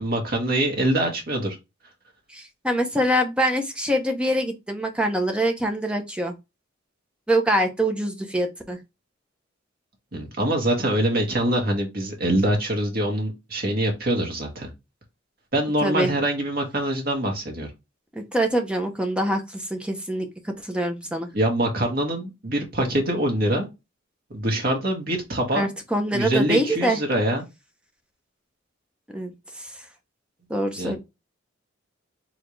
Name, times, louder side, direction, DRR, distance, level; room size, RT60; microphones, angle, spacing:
voice 1, 0.0-1.6 10.1-14.7 15.5-17.7 21.3-23.7 24.3-25.7 26.1-27.4 30.8-31.0, right 1 dB, 50° right, 1.9 m, -24 dB
voice 2, 2.3-6.3 7.3-8.8 15.8-16.1 18.1-21.3 25.5-27.0 29.1-29.7 30.5-31.0, right 1 dB, 5° right, 0.9 m, -24 dB
4.3 x 3.5 x 3.2 m
head